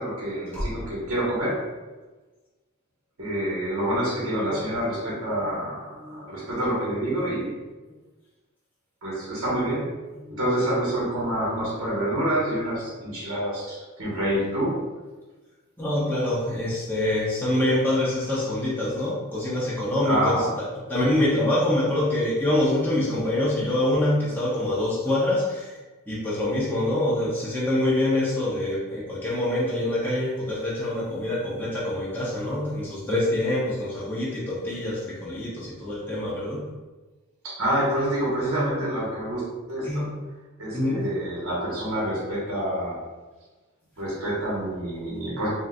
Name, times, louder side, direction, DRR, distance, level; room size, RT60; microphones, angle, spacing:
voice 1, 0.0-1.6 3.2-7.5 9.0-9.9 10.4-14.8 20.0-20.5 23.6-23.8 37.4-40.1 40.6-43.0 44.0-45.5, right 1 dB, 75° right, -7 dB, 1.2 m, -27 dB
voice 2, 10.1-10.5 15.8-25.8 26.1-36.6 39.8-40.1 40.7-41.0, left 1 dB, 10° left, -8 dB, 0.6 m, -25 dB
3.8 x 2.6 x 2.3 m, 1.2 s
head